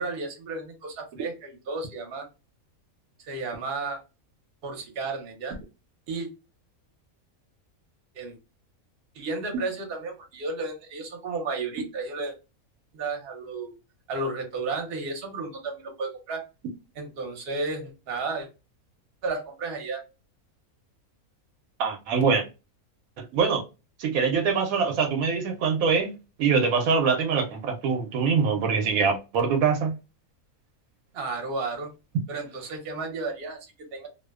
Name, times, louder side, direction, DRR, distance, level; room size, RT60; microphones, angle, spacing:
voice 1, 0.0-2.3 3.2-4.0 4.6-5.6 6.1-6.3 8.1-8.3 9.1-12.3 12.9-13.7 14.1-16.4 17.0-18.5 19.2-20.0 31.1-31.9 32.3-34.1, right 3 dB, 50° right, 0.8 m, -33 dB
voice 2, 21.8-22.4 23.2-23.6 24.0-26.1 26.4-29.9, right 5 dB, 75° right, 1.0 m, -24 dB
2.6 x 2.1 x 2.2 m
omnidirectional pair, 1.5 m